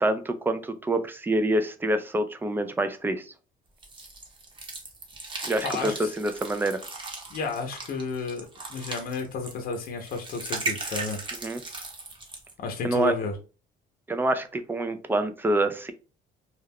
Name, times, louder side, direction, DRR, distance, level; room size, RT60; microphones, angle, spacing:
voice 1, 0.0-3.2 5.4-6.8 11.4-11.6 12.8-13.1 14.1-15.9, right 1 dB, 10° right, 9 dB, 0.4 m, -26 dB
sound 1, 3.8-12.5, right 3 dB, 30° right, 0.8 m, -37 dB
voice 2, 5.6-6.1 7.3-11.2 12.6-13.4, left 4 dB, 60° left, 4 dB, 0.7 m, -32 dB
2.3 x 2.2 x 3.4 m, 0.33 s
cardioid pair, 110°, 17 cm